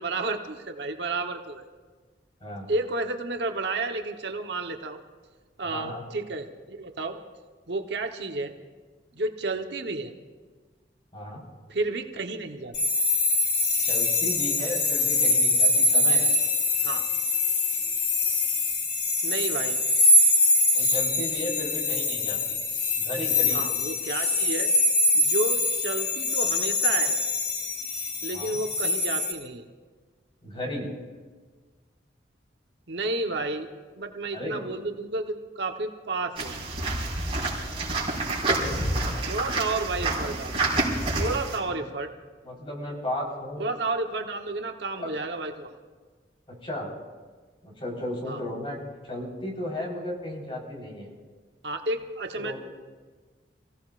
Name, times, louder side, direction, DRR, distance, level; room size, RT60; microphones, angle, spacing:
voice 1, 0.0-1.6 2.7-5.0 5.6-7.2 7.7-8.5 9.1-10.1 11.7-12.7 16.8-17.0 19.2-19.8 23.5-24.7 25.1-27.2 28.2-29.6 32.9-33.7 34.0-36.5 39.3-40.6 41.2-42.1 43.6-45.7 48.3-48.4 51.6-52.6, right 2 dB, 70° right, 5 dB, 1.0 m, -31 dB
voice 2, 5.7-6.0 11.1-11.4 13.8-16.3 20.7-22.6 23.0-23.7 28.3-28.6 30.4-30.9 34.3-34.6 38.2-39.3 41.7-41.8 42.4-43.7 45.0-45.1 46.5-46.9 47.6-48.8 49.1-51.1 52.4-52.6, left 1 dB, 30° left, -2 dB, 4.1 m, -35 dB
sound 1, 12.7-29.3, left 2 dB, 70° left, 2.9 m, -24 dB
sound 2, 36.4-41.6, right 2 dB, 35° right, 4.9 m, -28 dB
29.5 x 16.5 x 2.5 m, 1.4 s
head